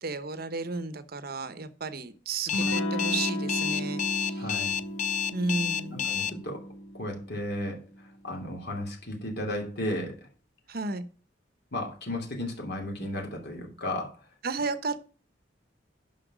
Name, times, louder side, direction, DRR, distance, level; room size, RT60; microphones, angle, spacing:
voice 1, 0.0-4.6 5.3-6.0 10.7-11.0 14.4-15.0, right 3 dB, 55° right, 13 dB, 1.0 m, -33 dB
Electric guitar / Strum, 2.5-7.9, equal, 85° left, 1.8 m, -34 dB
Alarm, 2.5-6.3, left 8 dB, 40° left, 0.5 m, -29 dB
voice 2, 4.4-4.8 5.9-6.6 6.9-7.8 8.2-10.2 11.7-14.1, left 1 dB, 60° left, 2 dB, 2.7 m, -34 dB
10.0 x 5.9 x 6.1 m, 0.39 s
head